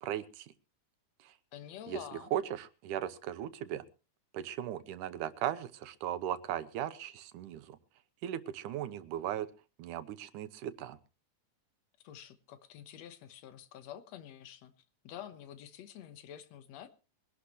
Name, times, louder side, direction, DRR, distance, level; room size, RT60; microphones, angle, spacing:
voice 1, 0.0-0.5 1.2-1.3 1.9-3.8 4.3-7.8 8.2-9.5 9.8-11.0, right 11 dB, 90° right, 12 dB, 2.4 m, -37 dB
voice 2, 1.5-2.3 12.0-14.7 15.0-16.9, left 10 dB, 65° left, 11 dB, 2.3 m, -48 dB
23.0 x 11.5 x 3.1 m, 0.33 s
omnidirectional pair, 3.5 m